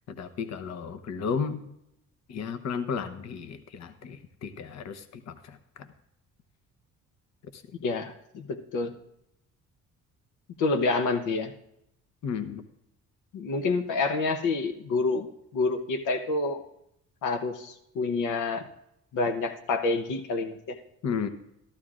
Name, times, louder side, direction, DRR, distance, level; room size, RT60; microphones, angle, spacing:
voice 1, 0.1-1.7 2.3-5.9 7.5-7.6 12.2-12.6 21.0-21.3, left 6 dB, 60° left, 9 dB, 0.9 m, -33 dB
voice 2, 7.8-8.9 10.6-11.5 13.3-15.3 15.5-16.6 17.2-18.6 19.1-20.8, left 3 dB, 85° left, 7 dB, 1.0 m, -28 dB
14.5 x 13.0 x 2.5 m, 0.80 s
cardioid pair, 90°, 30 cm